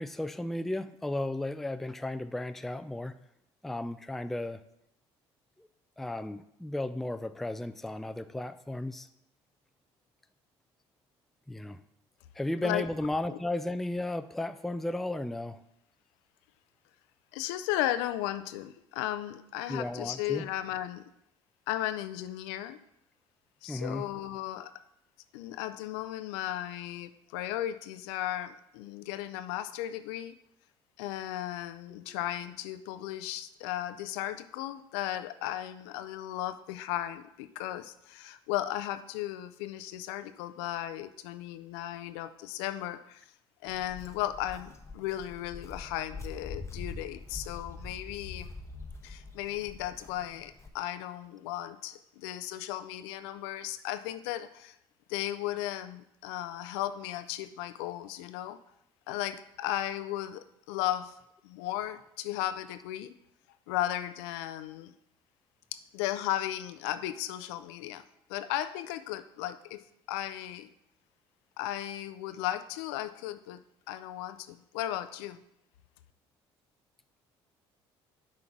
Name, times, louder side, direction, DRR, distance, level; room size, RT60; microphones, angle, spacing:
voice 1, 0.0-3.2 3.6-4.6 5.6-5.7 6.0-9.1 11.5-11.8 12.4-15.6 19.7-20.5 23.7-24.1, left 1 dB, ahead, 11 dB, 0.3 m, -34 dB
voice 2, 17.3-21.0 21.7-22.8 23.6-24.7 25.3-30.3 31.0-43.3 43.6-48.5 49.0-54.8 55.1-58.6 59.1-61.2 61.4-63.1 63.7-64.9 65.9-70.7 71.6-73.6 73.9-75.4, left 13 dB, 80° left, 11 dB, 0.4 m, -35 dB
Walk footsteps, 43.7-50.7, left 3 dB, 20° left, 0.9 m, -44 dB
6.0 x 3.8 x 5.9 m, 0.78 s
hypercardioid pair, 65°, 14 cm